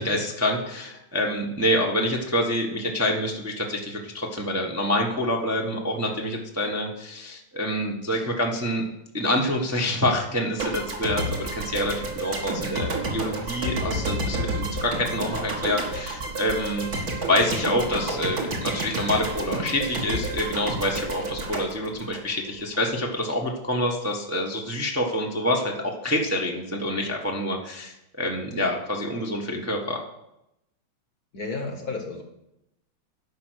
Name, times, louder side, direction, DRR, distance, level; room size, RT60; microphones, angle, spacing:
voice 1, 0.0-8.8 9.1-25.7 26.0-30.0, left 1 dB, 10° right, 0 dB, 0.8 m, -27 dB
sound 1, 10.6-22.8, right 2 dB, 45° right, 2.0 m, -30 dB
voice 2, 31.3-32.2, left 3 dB, 50° left, 4 dB, 1.4 m, -32 dB
11.0 x 5.5 x 6.4 m, 0.84 s
omnidirectional pair, 2.3 m